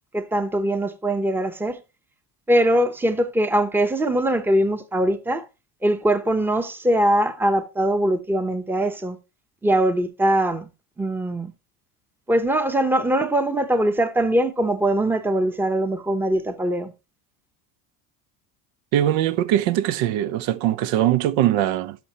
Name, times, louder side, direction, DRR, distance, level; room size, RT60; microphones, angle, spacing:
voice 1, 0.1-1.8 2.5-5.5 5.8-9.2 9.6-10.7 11.0-11.5 12.3-16.9, right 1 dB, 5° right, 0.8 m, -22 dB
voice 2, 18.9-22.0, right 12 dB, 70° right, 0.8 m, -21 dB
12.0 x 5.8 x 2.9 m
supercardioid pair, 110°, 48 cm